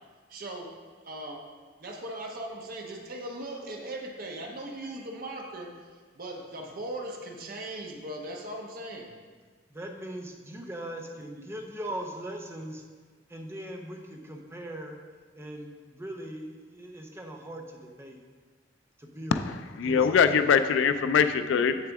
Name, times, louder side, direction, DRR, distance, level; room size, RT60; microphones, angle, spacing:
voice 1, 0.3-0.7 1.0-1.4 1.8-9.1, right 1 dB, 50° right, 0 dB, 1.0 m, -39 dB
voice 2, 9.7-12.8 13.3-15.0 15.3-18.2 19.0-19.5 19.8-20.1, right 1 dB, 15° right, 2 dB, 0.7 m, -40 dB
voice 3, 19.3-21.9, left 6 dB, 90° left, 11 dB, 0.3 m, -23 dB
7.4 x 6.8 x 3.5 m, 1.5 s
head